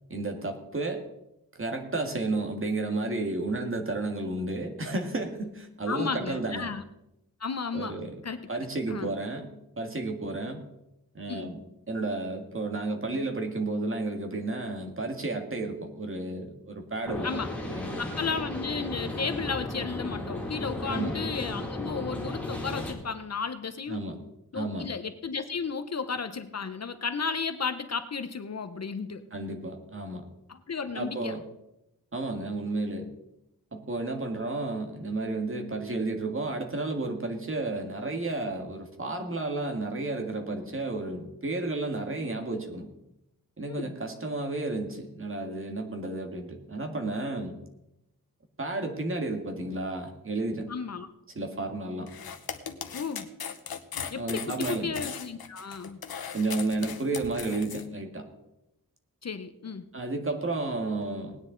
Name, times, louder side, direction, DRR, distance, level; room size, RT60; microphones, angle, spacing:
voice 1, 0.1-1.0 1.6-6.7 7.7-8.2 8.5-9.5 9.8-10.7 11.2-11.6 11.9-17.3 17.7-18.0 20.9-21.2 23.9-24.2 24.5-24.9 29.3-30.3 30.9-31.4 32.1-33.1 33.7-42.9 43.6-47.6 48.6-50.7 51.4-52.1 54.2-55.0 56.3-58.3 59.9-61.4, right 2 dB, 35° right, 4 dB, 1.8 m, -32 dB
voice 2, 5.9-6.8 7.4-8.0 8.2-8.5 8.9-9.1 11.3-11.5 17.2-17.5 18.0-24.0 24.5-29.2 30.5-31.4 43.7-43.9 50.7-51.1 52.9-53.3 54.1-56.0 59.2-59.9, left 5 dB, 45° left, 9 dB, 0.8 m, -33 dB
sound 1, 17.0-22.9, left 1 dB, 5° left, 2.3 m, -35 dB
sound 2, 52.1-57.8, left 7 dB, 85° left, 1.1 m, -38 dB
18.5 x 9.8 x 3.9 m, 0.86 s
wide cardioid pair, 145°, 36 cm